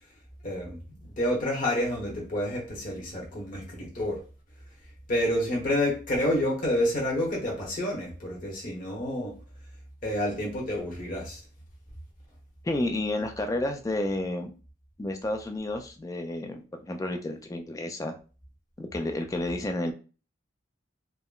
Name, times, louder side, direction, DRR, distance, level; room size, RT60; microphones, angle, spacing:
voice 1, 0.4-4.2 5.1-9.3 10.0-11.4, left 1 dB, 45° left, -3 dB, 0.9 m, -29 dB
voice 2, 12.6-14.5 15.0-18.1 18.8-19.9, left 1 dB, 20° left, 5 dB, 0.3 m, -31 dB
3.6 x 2.0 x 2.3 m, 0.35 s
head